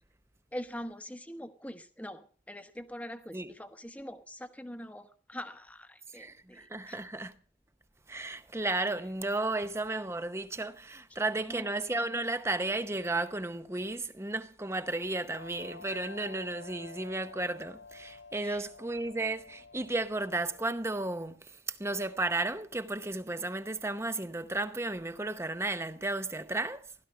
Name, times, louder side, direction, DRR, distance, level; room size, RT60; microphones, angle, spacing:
voice 1, 0.5-7.0 11.4-11.7 18.4-18.7, equal, 10° left, 1.1 m, -43 dB
voice 2, 6.1-7.3 8.1-26.8, right 2 dB, 15° right, 0.8 m, -33 dB
sound 1, 15.3-20.7, left 4 dB, 80° left, 3.4 m, -49 dB
16.0 x 12.5 x 5.6 m
head